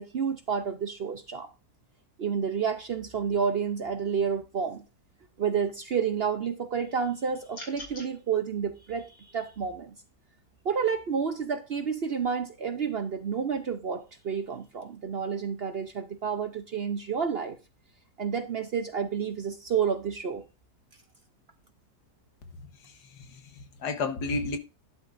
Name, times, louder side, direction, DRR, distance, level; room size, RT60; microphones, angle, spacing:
voice 1, 0.0-1.5 2.2-4.8 5.4-9.9 10.6-17.6 18.2-20.4, right 6 dB, 55° right, 0.7 m, -30 dB
sound 1, 7.5-8.1, left 2 dB, 60° left, 3.1 m, -42 dB
voice 2, 22.8-24.6, left 3 dB, 85° left, 1.8 m, -33 dB
11.5 x 10.5 x 2.6 m
omnidirectional pair, 1.7 m